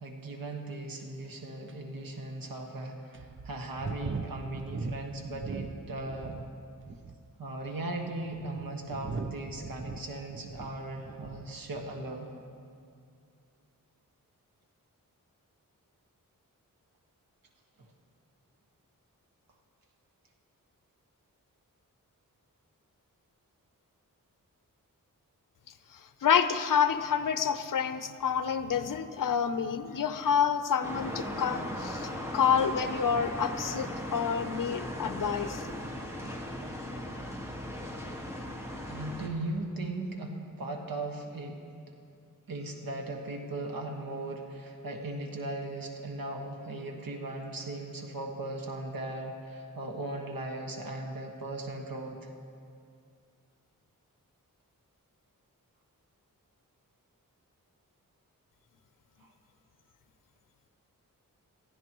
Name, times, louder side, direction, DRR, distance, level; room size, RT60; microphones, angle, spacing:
voice 1, 0.0-6.4 7.4-12.3 38.8-41.6 42.5-52.3 59.2-59.3, right 2 dB, 85° right, 2 dB, 1.7 m, -38 dB
sound 1, 1.0-1.1 1.7-1.8 2.4-2.5 3.1-6.5 6.8-7.3 8.0-11.5 11.8-12.1, right 4 dB, 35° right, 0.7 m, -40 dB
voice 2, 26.2-35.7, left 7 dB, 70° left, 10 dB, 0.8 m, -28 dB
sound 2, 30.8-39.3, left 1 dB, 10° right, 1.7 m, -38 dB
21.5 x 15.0 x 3.1 m, 2.4 s
wide cardioid pair, 90°, 34 cm